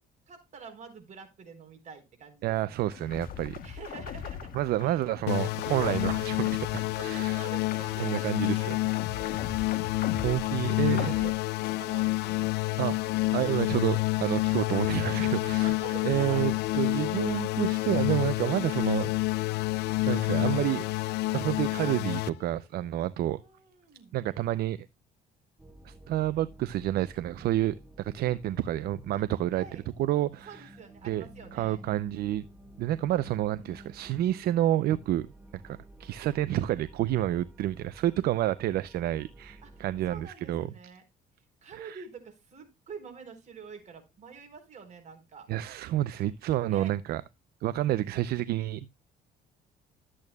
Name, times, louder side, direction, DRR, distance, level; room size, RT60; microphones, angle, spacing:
voice 1, 0.3-2.9 3.6-4.5 4.8-5.0 6.6-9.6 9.9-10.0 10.5-13.0 15.3-16.7 17.1-17.2 23.3-24.1 29.1-29.2 29.5-29.8 30.5-31.8 33.0-33.7 39.6-41.0 41.6-45.5 46.7-47.0, right 5 dB, 45° right, 4.1 m, -48 dB
voice 2, 2.4-3.6 4.5-7.4 8.0-8.7 10.2-11.1 12.8-13.0 13.3-15.8 16.0-19.1 20.1-20.8 21.3-23.4 24.1-24.8 25.8-29.6 30.0-30.7 31.0-31.2 31.5-32.5 32.8-35.3 35.6-40.7 41.7-42.0 45.5-47.2 47.6-48.9, right 13 dB, 65° right, 0.5 m, -29 dB
sound 1, 2.9-12.8 13.1-18.8, left 8 dB, 60° left, 1.4 m, -43 dB
sound 2, 5.3-22.3, left 20 dB, 75° left, 0.4 m, -28 dB
sound 3, 25.6-40.3, right 1 dB, 10° right, 1.6 m, -52 dB
12.5 x 8.7 x 2.2 m
cardioid pair, 110°, 17 cm